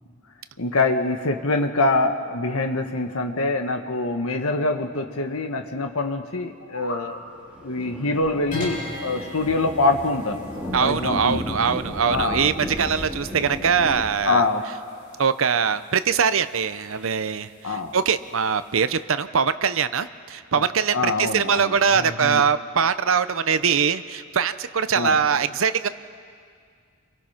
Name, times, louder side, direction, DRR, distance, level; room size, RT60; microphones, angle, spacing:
voice 1, 0.6-11.4 12.1-12.5 14.2-14.6 17.6-17.9 20.9-22.4 24.9-25.2, left 2 dB, 90° left, 5 dB, 1.6 m, -25 dB
sound 1, 6.4-7.1, left 1 dB, 60° left, 3.1 m, -37 dB
Thunder, 7.2-14.1, equal, 5° right, 2.9 m, -34 dB
sound 2, 8.5-19.0, left 3 dB, 40° left, 6.9 m, -41 dB
voice 2, 10.7-14.4 15.2-25.9, right 6 dB, 70° right, 13 dB, 0.8 m, -22 dB
30.0 x 23.5 x 5.8 m, 2.1 s
head